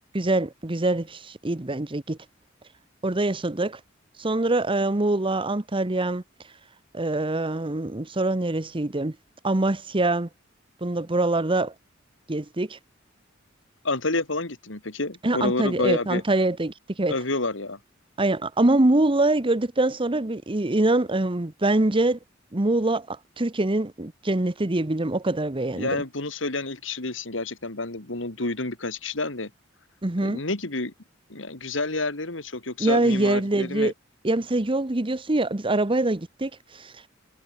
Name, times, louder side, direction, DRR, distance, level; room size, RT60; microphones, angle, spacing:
voice 1, 0.1-2.2 3.0-3.8 4.2-6.2 6.9-9.1 9.4-10.3 10.8-11.7 12.3-12.8 15.2-17.1 18.2-22.2 22.5-25.9 30.0-30.4 32.8-33.9 34.2-36.9, right 2 dB, 25° right, 1.0 m, -24 dB
voice 2, 13.8-16.2 17.1-17.8 25.8-29.5 30.2-30.9 31.3-33.9, left 2 dB, 70° left, 2.9 m, -29 dB
head